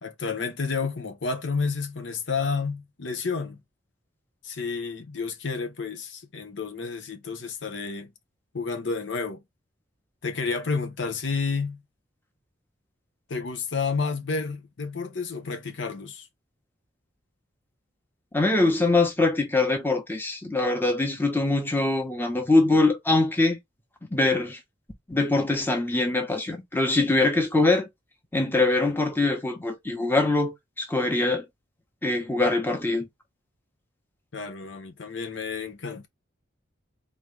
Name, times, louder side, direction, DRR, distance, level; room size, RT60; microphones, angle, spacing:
voice 1, 0.0-3.6 4.4-8.1 8.5-9.4 10.2-11.8 13.3-16.3 34.3-36.1, left 4 dB, 65° left, 0.7 m, -30 dB
voice 2, 18.3-23.6 24.1-24.6 25.1-27.9 28.3-31.4 32.0-33.1, left 2 dB, 10° left, 1.0 m, -23 dB
3.8 x 3.1 x 3.3 m
head